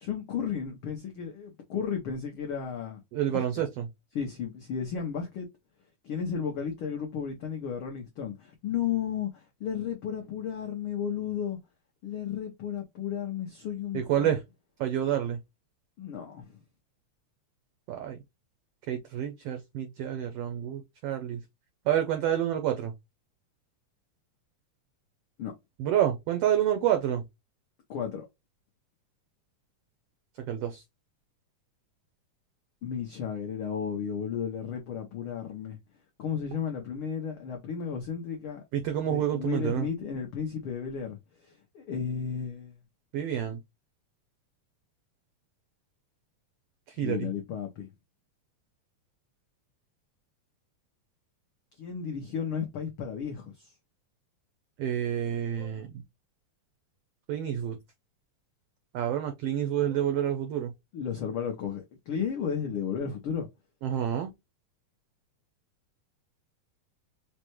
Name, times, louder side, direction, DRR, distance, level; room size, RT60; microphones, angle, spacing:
voice 1, 0.0-3.0 3.3-3.4 4.1-5.5 6.0-11.6 12.0-14.3 16.0-16.6 25.4-25.5 27.9-28.3 32.8-35.8 36.2-38.6 39.0-42.8 47.0-47.9 51.8-53.7 60.9-63.5, left 7 dB, 85° left, 1.2 m, -33 dB
voice 2, 3.1-3.9 13.9-14.4 14.8-15.4 17.9-18.2 18.9-21.4 21.9-22.9 25.8-27.2 30.5-30.8 38.7-39.9 43.1-43.6 46.9-47.3 54.8-56.0 57.3-57.8 58.9-60.7 63.8-64.3, right 10 dB, 85° right, 1.3 m, -28 dB
5.3 x 2.2 x 2.9 m
omnidirectional pair, 3.4 m